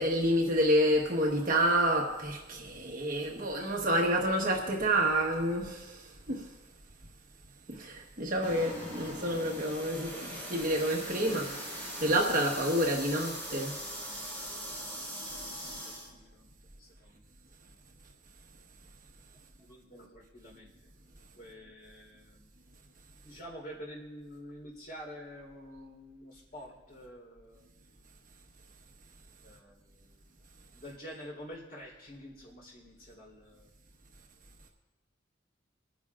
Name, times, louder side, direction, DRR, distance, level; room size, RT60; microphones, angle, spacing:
voice 1, 0.0-6.5 7.7-10.1 10.5-11.4 12.0-13.7, right 1 dB, 45° right, -1 dB, 1.2 m, -28 dB
sound 1, 8.4-16.1, equal, 10° left, 4.2 m, -41 dB
voice 2, 11.2-11.6 14.7-16.5 16.8-17.2 17.7-17.8 19.6-20.7 21.2-22.5 23.2-27.6 29.4-30.2 30.7-33.7, equal, 50° left, -2 dB, 3.6 m, -48 dB
28.5 x 10.5 x 2.4 m, 1.2 s
head